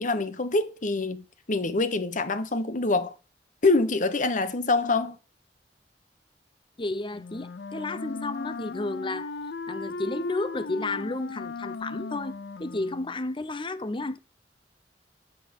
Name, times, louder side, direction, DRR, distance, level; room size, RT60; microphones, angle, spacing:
voice 1, 0.0-3.1 3.6-5.2, left 3 dB, 45° left, 1.2 m, -25 dB
voice 2, 6.8-9.3 9.7-14.2, left 2 dB, 30° left, 0.8 m, -32 dB
Wind instrument woodwind instrument, 7.1-13.2, left 4 dB, 70° left, 0.6 m, -37 dB
9.8 x 7.7 x 6.2 m
head